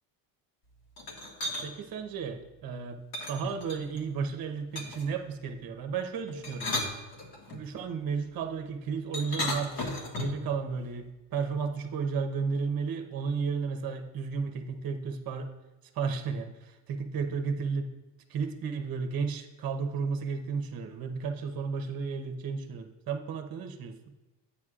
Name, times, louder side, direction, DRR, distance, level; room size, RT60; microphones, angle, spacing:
sound 1, 1.0-1.7 3.1-4.0 4.7-5.1 6.3-7.6 9.1-10.5, left 1 dB, 55° left, 1.7 m, -35 dB
voice 1, 1.6-3.0 3.3-6.7 7.5-15.5 15.9-17.9 18.3-24.0, right 5 dB, 50° right, 6 dB, 1.0 m, -33 dB
9.4 x 8.6 x 2.5 m, 1.1 s
cardioid pair, 95°, 45 cm